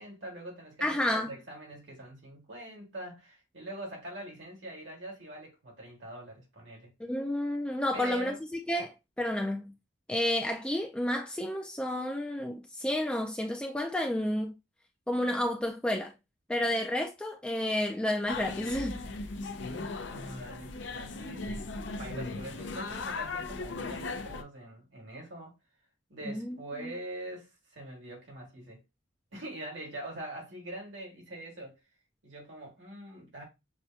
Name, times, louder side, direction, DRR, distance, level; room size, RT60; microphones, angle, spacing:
voice 1, 0.0-6.9 7.9-8.4 19.6-25.5 26.1-28.8 29.3-31.8 32.2-33.4, right 1 dB, 80° right, 2.3 m, -44 dB
voice 2, 0.8-1.3 7.0-8.3 8.7-9.7 10.1-14.5 15.1-16.1 16.5-19.0 26.3-26.9, left 1 dB, 5° left, 0.4 m, -31 dB
sound 1, 18.3-24.4, left 3 dB, 70° left, 0.6 m, -38 dB
6.6 x 2.2 x 2.8 m
head